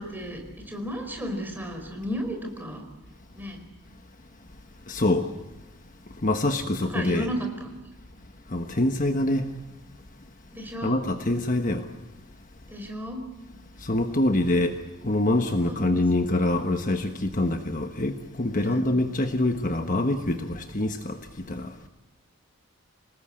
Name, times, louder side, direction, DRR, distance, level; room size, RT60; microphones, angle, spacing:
voice 1, 0.0-2.8 3.3-3.6 6.6-7.8 10.5-11.0 12.7-13.2 15.6-15.9 18.5-18.8, equal, 10° right, 4.8 m, -34 dB
voice 2, 4.9-5.3 6.2-7.3 8.5-9.5 10.8-11.8 13.8-14.8 15.0-21.2 21.5-21.7, left 1 dB, 40° left, 1.3 m, -25 dB
27.5 x 19.0 x 8.7 m
head